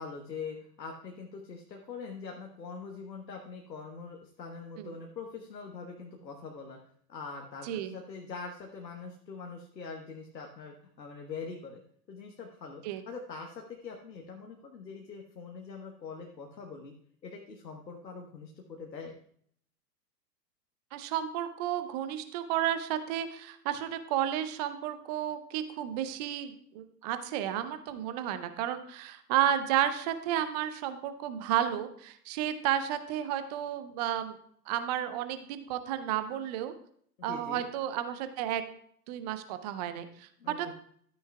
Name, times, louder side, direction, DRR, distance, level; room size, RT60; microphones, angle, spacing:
voice 1, 0.0-6.8 7.1-11.8 12.1-16.9 17.2-19.1 37.2-37.6 40.4-40.7, left 5 dB, 80° left, 2 dB, 1.3 m, -43 dB
voice 2, 20.9-34.4 34.7-36.7 37.2-38.6 39.1-40.3 40.6-40.7, right 11 dB, 25° right, 10 dB, 0.6 m, -32 dB
12.5 x 9.5 x 2.3 m, 0.63 s
figure-of-eight pair, 110°, 50 cm